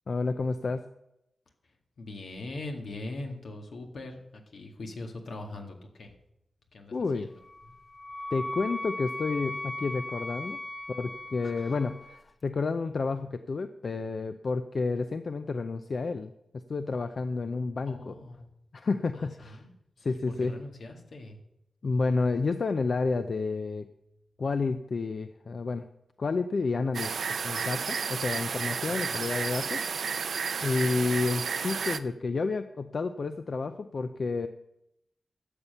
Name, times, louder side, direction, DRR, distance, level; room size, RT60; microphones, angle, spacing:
voice 1, 0.1-0.8 6.9-7.3 8.3-10.6 10.9-16.3 16.7-18.1 18.7-19.6 20.0-20.6 21.8-23.9 24.4-25.9 26.2-27.1 27.4-30.3 30.6-34.5, left 4 dB, 55° left, 10 dB, 0.5 m, -30 dB
voice 2, 2.0-6.1 6.7-7.3 11.6-11.7 17.9-18.5 19.1-19.2 19.5-19.7 20.3-21.4 29.1-29.2, left 2 dB, 80° left, 3 dB, 1.9 m, -41 dB
Wind instrument woodwind instrument, 7.4-12.2, left 1 dB, 15° left, 0.7 m, -38 dB
sound 1, 26.9-32.0, right 6 dB, 85° right, 0.5 m, -32 dB
12.5 x 7.3 x 6.7 m, 0.82 s
wide cardioid pair, 115°, 0 cm